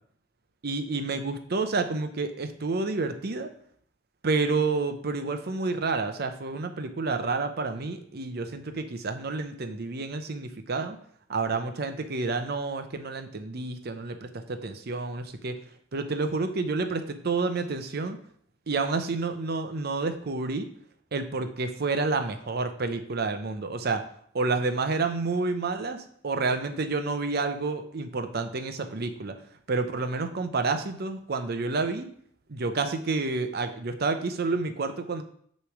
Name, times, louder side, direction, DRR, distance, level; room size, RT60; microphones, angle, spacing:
voice 1, 0.6-3.5 4.2-11.0 11.3-15.6 15.9-18.2 18.7-20.7 21.1-24.0 24.3-29.3 29.7-32.1 32.5-35.2, right 3 dB, 55° right, 8 dB, 0.7 m, -29 dB
6.7 x 3.2 x 6.0 m, 0.62 s
head